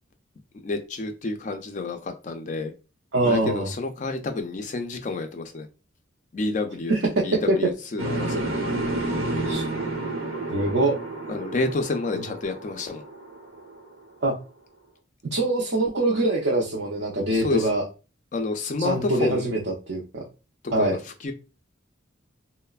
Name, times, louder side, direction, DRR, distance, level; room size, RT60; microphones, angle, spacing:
voice 1, 0.6-2.7 3.2-5.7 6.3-6.9 7.2-8.6 11.3-13.0 17.3-17.7 18.3-19.5 20.8-21.3, left 3 dB, 40° left, 6 dB, 0.3 m, -29 dB
voice 2, 3.1-3.7 6.9-7.0 7.5-7.6 9.5-9.6 10.5-11.0 12.1-12.2 14.2-14.3 15.3-17.8 18.8-20.2 20.7-21.0, right 2 dB, 60° right, -3 dB, 0.5 m, -23 dB
sound 1, 8.0-14.0, right 2 dB, 90° right, 1.0 m, -30 dB
3.2 x 2.0 x 2.2 m, 0.31 s
head